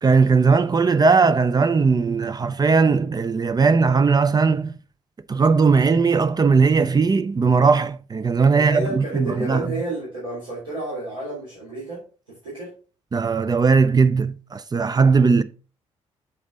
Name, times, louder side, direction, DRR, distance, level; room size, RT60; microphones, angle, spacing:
voice 1, 0.0-4.7 5.3-9.7 13.1-15.4, right 4 dB, 25° right, 0.5 m, -18 dB
voice 2, 8.6-12.0 12.3-12.7, right 1 dB, 80° right, 3.3 m, -31 dB
6.7 x 5.2 x 4.0 m
figure-of-eight pair, 45°, 16 cm